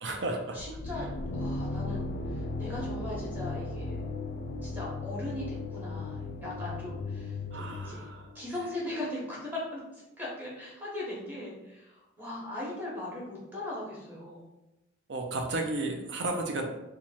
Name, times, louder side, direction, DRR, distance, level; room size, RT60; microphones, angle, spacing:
voice 1, 0.0-0.6 7.5-8.3 15.1-16.7, right 2 dB, 65° right, 3 dB, 0.6 m, -33 dB
voice 2, 0.5-1.1 1.3-4.0 4.6-8.1 8.3-14.5, left 1 dB, 10° right, -7 dB, 1.0 m, -39 dB
sound 1, 0.6-8.4, left 2 dB, 55° left, 0.3 m, -36 dB
3.0 x 2.3 x 4.2 m, 0.95 s
head